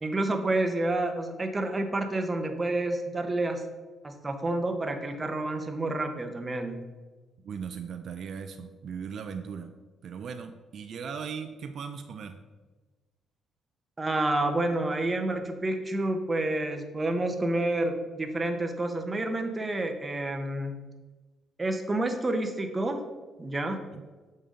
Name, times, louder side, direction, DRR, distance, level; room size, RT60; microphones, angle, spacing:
voice 1, 0.0-3.6 4.0-6.8 14.0-20.7 21.6-23.0 23.4-23.8, right 2 dB, 25° right, 5 dB, 0.9 m, -29 dB
voice 2, 7.4-12.4 23.9-24.1, right 6 dB, 60° right, 7 dB, 0.5 m, -38 dB
7.0 x 5.4 x 3.7 m, 1.3 s
cardioid pair, 90°, 0 cm